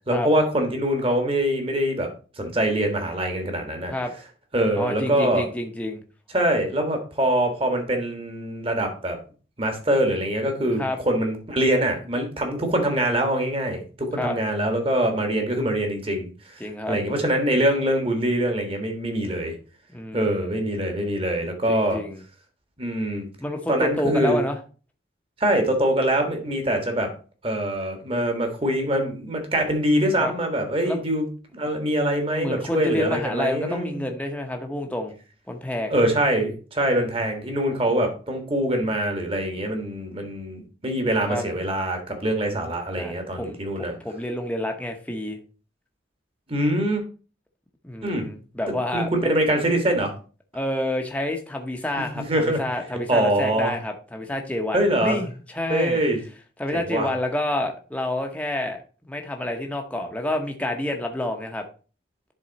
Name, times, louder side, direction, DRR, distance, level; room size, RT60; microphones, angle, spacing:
voice 1, 0.1-2.1 2.4-3.9 4.5-5.4 6.3-9.2 9.6-16.3 16.9-19.5 20.1-22.0 22.8-23.3 23.7-24.4 25.4-27.1 27.4-31.3 31.5-34.1 35.9-44.0 46.5-47.0 48.0-48.3 48.9-50.1 52.1-52.6 53.1-53.7 54.7-55.2 55.7-56.2 56.7-57.1, right 1 dB, 30° right, 4 dB, 1.6 m, -24 dB
voice 2, 4.8-6.0 10.8-11.0 14.2-14.4 16.6-17.0 19.9-20.6 21.7-22.2 23.4-24.6 30.2-30.3 30.8-31.0 32.4-35.1 35.5-36.0 41.3-41.4 43.0-43.6 44.0-45.4 47.8-49.3 50.5-56.0 56.6-61.6, left 1 dB, 10° left, 2 dB, 0.8 m, -28 dB
10.5 x 3.8 x 4.0 m, 0.36 s
head